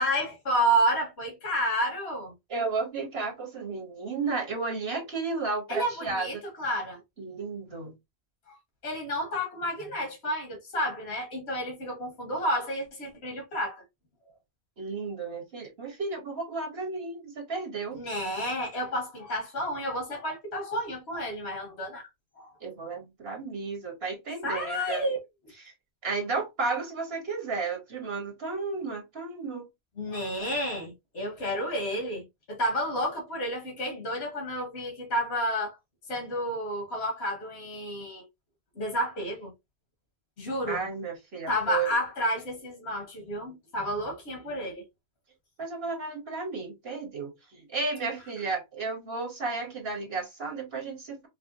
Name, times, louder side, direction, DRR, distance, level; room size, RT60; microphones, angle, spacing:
voice 1, 0.0-2.3 5.7-7.0 8.5-8.6 8.8-13.8 17.9-22.1 22.4-22.5 24.4-25.2 30.0-32.2 32.5-35.8 36.1-38.2 38.7-39.5 40.4-40.8 41.5-44.8, equal, 80° left, 1.5 m, -30 dB
voice 2, 2.5-6.3 7.2-7.9 14.8-18.0 22.6-25.2 25.6-25.7 26.0-29.6 40.7-41.9 45.6-51.3, right 4 dB, 70° right, 1.6 m, -33 dB
4.9 x 2.2 x 2.6 m
omnidirectional pair, 1.1 m